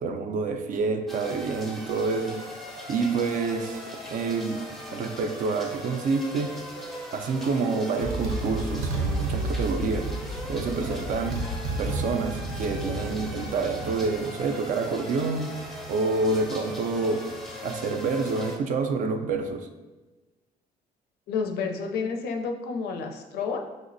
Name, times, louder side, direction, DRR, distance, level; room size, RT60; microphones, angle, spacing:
voice 1, 0.0-2.4 2.9-3.8 4.1-4.6 4.9-6.5 7.1-10.1 10.5-11.4 11.8-15.5 15.9-17.3 17.6-19.7, right 4 dB, 50° right, 6 dB, 0.4 m, -28 dB
sound 1, 1.1-18.6, equal, ahead, 0.5 m, -40 dB
Motorcycle, 7.4-7.6 8.0-14.2, right 2 dB, 85° right, 0.7 m, -31 dB
voice 2, 21.3-23.6, left 5 dB, 75° left, 3 dB, 0.5 m, -30 dB
4.9 x 2.0 x 2.6 m, 1.2 s
cardioid pair, 110°, 17 cm